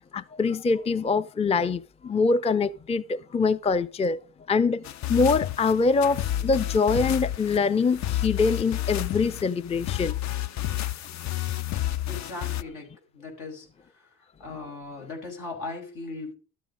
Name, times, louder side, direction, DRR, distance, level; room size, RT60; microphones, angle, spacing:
voice 1, 0.1-4.2 4.5-4.8 5.1-10.2, left 4 dB, 20° left, 0.5 m, -24 dB
sound 1, 4.8-12.6, left 13 dB, 65° left, 0.6 m, -30 dB
voice 2, 12.1-13.7 13.9-14.1 14.4-16.4, left 3 dB, 85° left, 5.2 m, -38 dB
12.5 x 7.8 x 5.1 m
cardioid pair, 90°, 30 cm